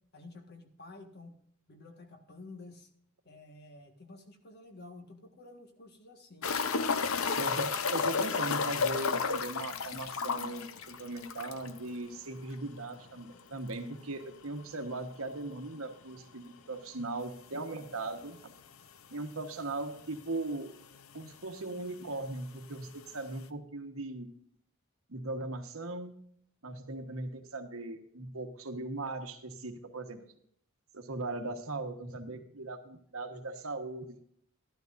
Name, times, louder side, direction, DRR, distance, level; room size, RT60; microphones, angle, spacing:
voice 1, 0.1-1.4 1.7-2.9 3.3-6.5, left 2 dB, 50° left, 5 dB, 1.7 m, -51 dB
sound 1, 6.4-11.8 12.1-12.2 12.5-12.6 15.4-15.5 17.2-17.3 18.1-18.2 18.4-18.5 19.4-19.5 19.7-20.3 21.2-21.3, left 5 dB, 80° left, 0.7 m, -32 dB
voice 2, 7.3-18.5 19.1-20.7 21.1-24.3 25.1-26.2 26.6-30.2 30.9-34.2, right 2 dB, 85° right, 6 dB, 1.3 m, -39 dB
12.5 x 12.0 x 2.6 m, 0.66 s
head